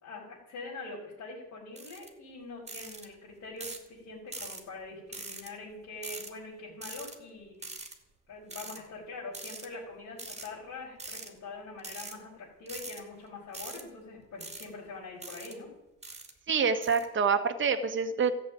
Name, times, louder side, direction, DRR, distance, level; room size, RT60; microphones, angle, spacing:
voice 1, 0.0-7.8 8.3-15.7, left 3 dB, 70° left, -6 dB, 5.7 m, -44 dB
sound 1, 1.8-2.1 2.7-3.1 3.6-3.9 4.3-4.6 5.1-5.5 6.0-6.3 6.8-7.2 7.6-7.9 8.5-8.8 9.3-9.7 10.2-10.5 11.0-11.3 11.8-12.1 12.7-13.0 13.5-13.8 14.4-14.7 15.2-15.5 16.0-16.3 16.8-17.0, right 3 dB, 20° right, 2.6 m, -42 dB
voice 2, 16.5-18.3, right 5 dB, 40° right, 6 dB, 1.6 m, -26 dB
14.0 x 7.8 x 9.3 m, 0.97 s
cardioid pair, 90°, 30 cm